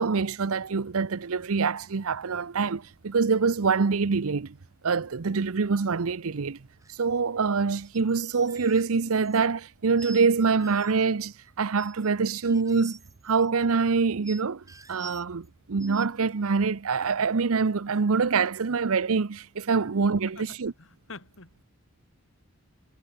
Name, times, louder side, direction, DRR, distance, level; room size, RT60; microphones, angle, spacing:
voice 1, 0.0-4.6 4.8-6.7 6.9-13.0 13.2-20.7, right 5 dB, 75° right, 0.7 m, -25 dB
sound 1, 6.8-7.0 7.7-9.5 10.0-10.3 10.6-11.1 11.8-12.1 12.4-13.5 14.2-15.5 15.8-16.1 16.4-16.6, right 4 dB, 15° right, 4.1 m, -48 dB
voice 2, 20.3-21.6, left 3 dB, 60° left, 2.8 m, -47 dB
head